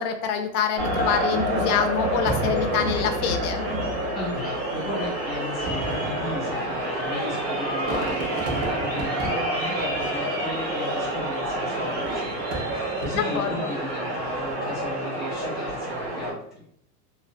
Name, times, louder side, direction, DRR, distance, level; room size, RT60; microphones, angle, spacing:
voice 1, 0.0-3.6 13.2-13.7, left 7 dB, 70° left, 6 dB, 0.6 m, -26 dB
sound 1, 0.8-16.3, right 1 dB, 85° right, 1.3 m, -28 dB
Fireworks, 2.3-3.9 4.7-4.8 5.5-10.8 11.8-13.6 14.2-14.7, right 1 dB, 65° right, 0.9 m, -35 dB
voice 2, 4.1-16.6, left 1 dB, ahead, -12 dB, 0.5 m, -35 dB
2.7 x 2.1 x 2.4 m, 0.69 s
supercardioid pair, 155°, 47 cm